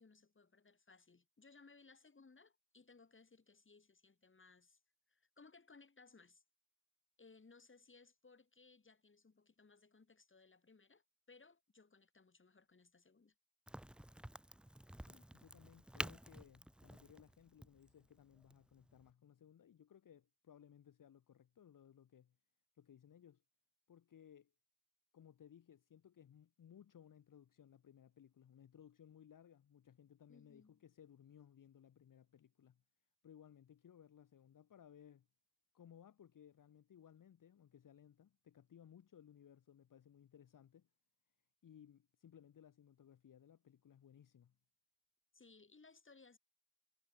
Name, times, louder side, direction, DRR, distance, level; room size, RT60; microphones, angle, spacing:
voice 1, 0.0-4.8 5.1-6.4 7.2-13.3 30.3-30.8 45.3-46.4, left 4 dB, 35° left, 5.9 m, -64 dB
Crack, 13.7-19.1, right 1 dB, 5° right, 0.5 m, -50 dB
voice 2, 15.1-22.4 22.7-23.4 23.9-24.5 25.1-32.8 33.2-35.3 35.7-40.9 41.6-44.5, left 9 dB, 70° left, 1.0 m, -62 dB
wide cardioid pair, 140°, 33 cm